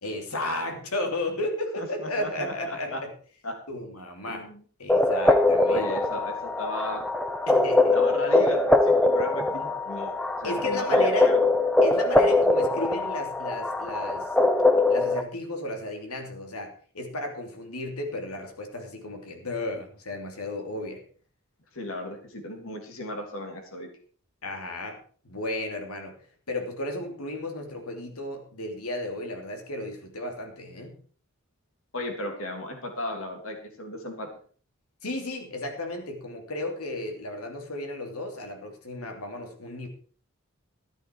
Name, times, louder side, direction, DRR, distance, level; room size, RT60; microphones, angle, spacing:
voice 1, 0.0-3.1 3.7-4.5 4.8-5.9 7.5-8.0 10.4-11.3 11.8-14.3 14.9-21.0 24.4-25.0 25.2-26.1 26.5-30.9 35.0-39.9, left 1 dB, 90° left, 4 dB, 3.0 m, -34 dB
voice 2, 1.8-3.0 3.4-3.5 4.3-4.6 5.7-7.1 7.9-10.1 10.4-11.4 21.7-23.9 31.9-34.3, left 1 dB, 65° left, 4 dB, 3.1 m, -35 dB
sound 1, 4.9-15.2, left 2 dB, 5° left, 0.7 m, -22 dB
13.5 x 10.5 x 4.6 m, 0.42 s
head